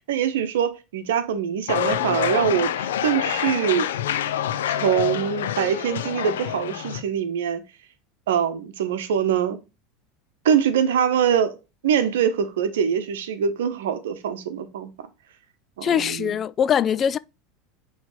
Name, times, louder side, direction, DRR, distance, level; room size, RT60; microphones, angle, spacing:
voice 1, 0.0-3.9 4.7-7.6 8.3-9.6 10.4-11.6 11.8-14.9 15.8-16.4, right 8 dB, 80° right, 0.9 m, -23 dB
sound 1, 1.7-7.0, left 10 dB, 80° left, 0.7 m, -26 dB
voice 2, 15.8-17.2, left 8 dB, 35° left, 0.3 m, -22 dB
6.3 x 3.2 x 4.8 m
hypercardioid pair, 90°, 0 cm